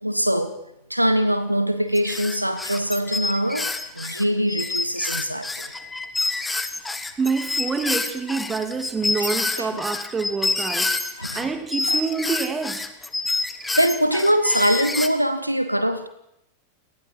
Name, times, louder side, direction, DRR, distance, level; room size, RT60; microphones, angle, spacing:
voice 1, 0.0-0.6 0.9-5.7 9.2-9.3 9.6-9.8 11.2-11.5 11.9-12.0 13.8-16.1, equal, 90° right, 1.3 m, -23 dB
sound 1, 1.9-11.5 11.7-15.1, left 3 dB, 10° left, 1.6 m, -27 dB
voice 2, 6.9-10.9 11.3-12.9, right 4 dB, 15° right, 2.7 m, -27 dB
29.0 x 19.5 x 4.7 m
figure-of-eight pair, 90°, 0 cm